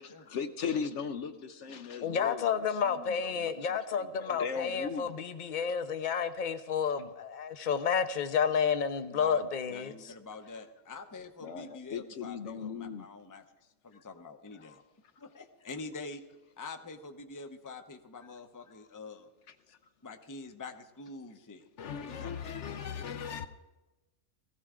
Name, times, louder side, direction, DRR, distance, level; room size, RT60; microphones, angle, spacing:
voice 1, 0.0-5.2 6.8-6.9 9.9-10.0 10.5-10.6 11.4-13.1 13.9-14.0 14.5-14.8 18.7-18.9 19.5-19.8 21.8-23.5, left 6 dB, 65° left, 1.0 m, -39 dB
voice 2, 2.0-10.1, left 7 dB, 45° left, 0.8 m, -30 dB
voice 3, 9.1-9.4 9.7-13.4 13.8-14.8 15.2-16.2 16.6-19.3 19.7-19.8 20.0-21.7 22.0-22.5, left 3 dB, 20° left, 0.7 m, -46 dB
19.0 x 15.5 x 3.7 m
omnidirectional pair, 1.4 m